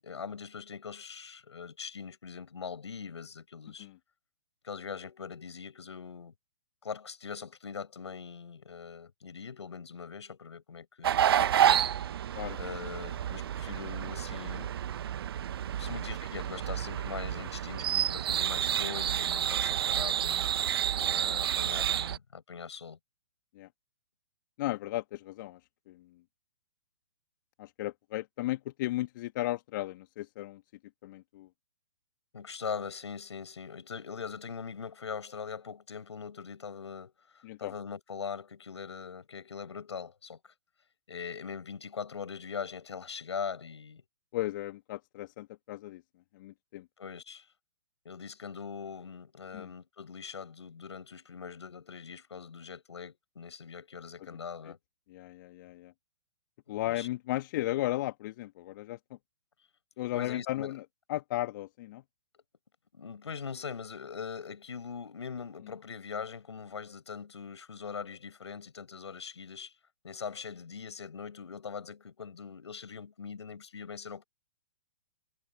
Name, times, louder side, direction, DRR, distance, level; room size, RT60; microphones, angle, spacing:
voice 1, 0.0-3.9 4.6-6.3 6.8-11.9 12.6-14.7 15.8-20.5 21.0-23.0 32.3-40.5 41.1-44.0 47.0-47.5 48.0-54.8 56.7-57.1 60.1-60.8 62.9-69.7 70.0-74.2, left 6 dB, 75° left, 7.8 m, -42 dB
sound 1, 11.0-22.2, right 10 dB, 55° right, 1.0 m, -30 dB
voice 2, 24.6-25.6 25.9-26.1 27.6-30.6 31.0-31.5 37.4-37.7 44.3-46.0 46.3-46.9 49.5-49.7 54.6-54.7 55.1-55.9 56.7-59.2 60.0-60.8 61.1-62.0, left 16 dB, 45° left, 1.4 m, -35 dB
figure-of-eight pair, 125°, 15 cm